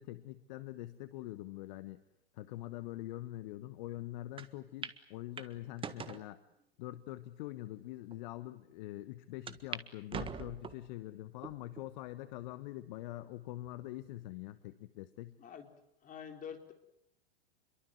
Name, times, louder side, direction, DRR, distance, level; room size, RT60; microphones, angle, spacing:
voice 1, 0.0-2.0 2.3-6.4 6.8-15.4, left 16 dB, 50° left, 13 dB, 1.2 m, -44 dB
sound 1, 4.4-4.5 4.8-5.0 5.4-6.2 6.9-7.0 7.7-7.8 8.1-8.2 9.5-9.8 10.1-10.9 11.4-11.9 12.4-12.5 13.6-14.1, right 6 dB, 15° right, 1.6 m, -43 dB
voice 2, 15.4-15.7 16.0-16.7, left 7 dB, 25° left, 4 dB, 4.3 m, -46 dB
28.0 x 23.0 x 8.0 m, 0.78 s
figure-of-eight pair, 95°, 30 cm